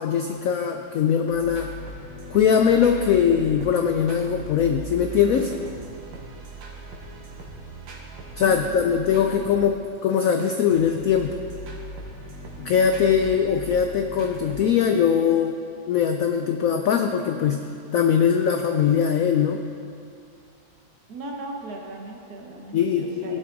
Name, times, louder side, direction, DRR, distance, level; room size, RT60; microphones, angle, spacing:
voice 1, 0.0-1.7 2.3-5.5 8.4-11.4 12.6-15.6 15.9-19.6 22.7-23.4, left 7 dB, 80° left, 5 dB, 0.7 m, -21 dB
sound 1, 1.3-9.6 10.1-14.6, right 1 dB, 80° right, 2.1 m, -39 dB
voice 2, 8.4-9.7 21.1-23.4, right 2 dB, 60° right, 0 dB, 1.6 m, -38 dB
16.0 x 6.3 x 3.9 m, 2.4 s
omnidirectional pair, 2.0 m